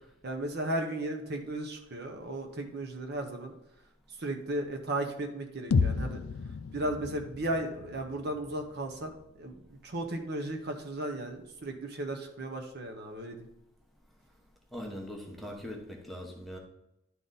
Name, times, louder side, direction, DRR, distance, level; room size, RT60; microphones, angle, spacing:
voice 1, 0.2-3.5 4.2-6.2 6.7-9.1 9.4-9.6 9.8-13.5, right 1 dB, 45° right, 5 dB, 0.8 m, -35 dB
sound 1, 5.7-9.7, left 4 dB, 75° left, 0.4 m, -33 dB
voice 2, 14.7-16.6, equal, ahead, 0 dB, 1.0 m, -41 dB
11.0 x 3.9 x 3.9 m, 0.86 s
head